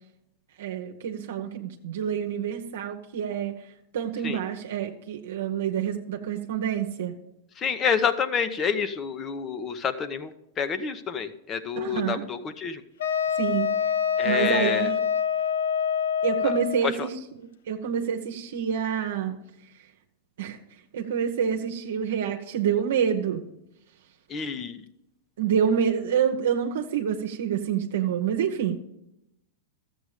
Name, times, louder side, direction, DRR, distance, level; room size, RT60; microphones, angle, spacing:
voice 1, 0.6-3.6 3.9-7.1 11.8-12.2 13.4-13.7 14.2-15.0 16.2-17.4 17.7-19.4 20.4-20.6 20.9-23.4 25.4-28.8, right 8 dB, 75° right, 2 dB, 1.0 m, -27 dB
voice 2, 7.6-12.8 14.2-14.9 16.8-17.1 24.3-24.8, left 6 dB, 30° left, 11 dB, 0.9 m, -28 dB
Wind instrument woodwind instrument, 13.0-16.9, left 8 dB, 80° left, 0.8 m, -25 dB
13.0 x 7.9 x 5.0 m, 0.85 s
hypercardioid pair, 120°, 0 cm